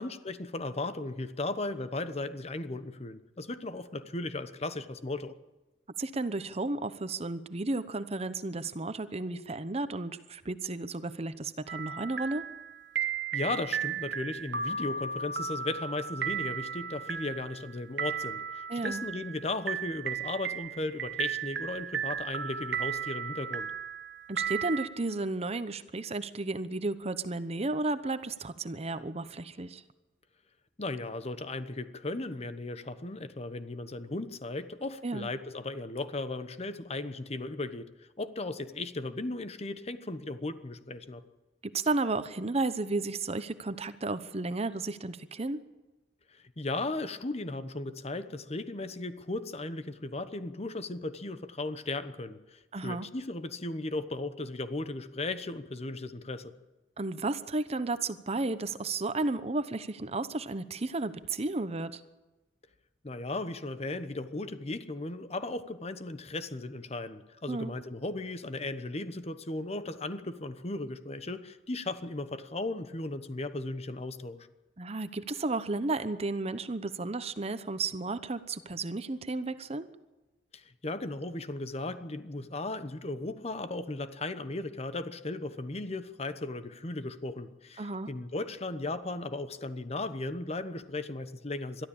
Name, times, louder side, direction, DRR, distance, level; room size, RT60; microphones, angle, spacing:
voice 1, 0.0-5.3 13.3-23.7 30.8-41.2 46.3-56.5 63.0-74.5 80.5-91.8, left 2 dB, 35° left, 11 dB, 1.0 m, -36 dB
voice 2, 6.0-12.5 18.7-19.0 24.3-29.8 35.0-35.3 41.6-45.6 52.7-53.1 57.0-62.0 67.5-67.7 74.8-79.9 87.8-88.1, right 2 dB, 35° right, 13 dB, 0.9 m, -33 dB
sound 1, 11.7-24.9, right 7 dB, 80° right, 1.4 m, -35 dB
22.0 x 13.5 x 8.7 m, 1.1 s
head